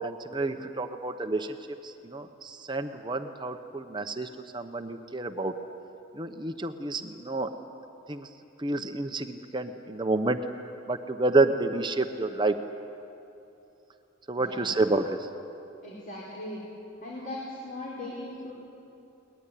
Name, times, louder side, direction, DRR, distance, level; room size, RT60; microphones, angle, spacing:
voice 1, 0.0-1.6 1.8-5.5 6.1-7.5 8.1-8.3 8.6-10.4 10.9-12.5 14.3-15.2, right 2 dB, 25° right, 7 dB, 0.9 m, -29 dB
voice 2, 14.4-14.8 15.8-16.6 17.0-18.5, left 1 dB, 45° left, -4 dB, 4.4 m, -39 dB
22.5 x 20.5 x 9.9 m, 2.8 s
head